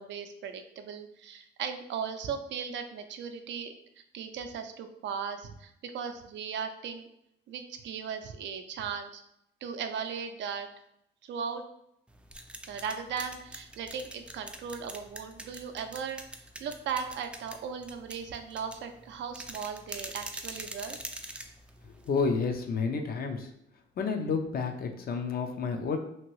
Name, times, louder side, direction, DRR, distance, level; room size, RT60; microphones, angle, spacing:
voice 1, 0.0-3.7 4.1-7.1 7.5-9.2 9.6-10.7 11.3-11.6 12.7-16.2 16.6-21.0, right 6 dB, 65° right, 7 dB, 0.4 m, -37 dB
sound 1, 12.1-22.4, right 1 dB, 5° right, 0.3 m, -44 dB
voice 2, 21.8-23.5 24.0-26.0, left 5 dB, 50° left, 4 dB, 0.5 m, -30 dB
2.8 x 2.6 x 3.0 m, 0.77 s
cardioid pair, 90°, 20 cm